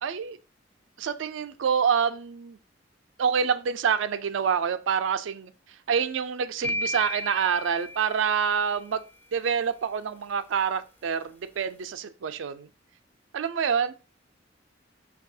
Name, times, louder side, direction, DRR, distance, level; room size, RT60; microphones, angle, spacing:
voice 1, 0.0-0.4 1.0-2.6 3.2-5.5 5.9-9.0 9.3-12.7 13.3-13.9, right 7 dB, 80° right, 0.4 m, -27 dB
sound 1, 6.6-8.8, left 1 dB, 10° left, 0.4 m, -34 dB
5.9 x 2.3 x 2.6 m
head